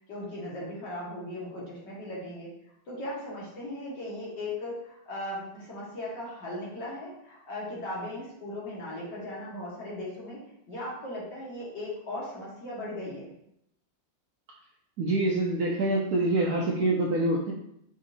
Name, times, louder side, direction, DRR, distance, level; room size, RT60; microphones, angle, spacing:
voice 1, 0.1-2.5 2.9-10.4 10.7-13.3, left 1 dB, 65° left, -5 dB, 1.8 m, -37 dB
voice 2, 15.0-17.5, right 2 dB, 75° right, -2 dB, 0.8 m, -26 dB
5.1 x 2.6 x 2.7 m, 0.78 s
omnidirectional pair, 2.0 m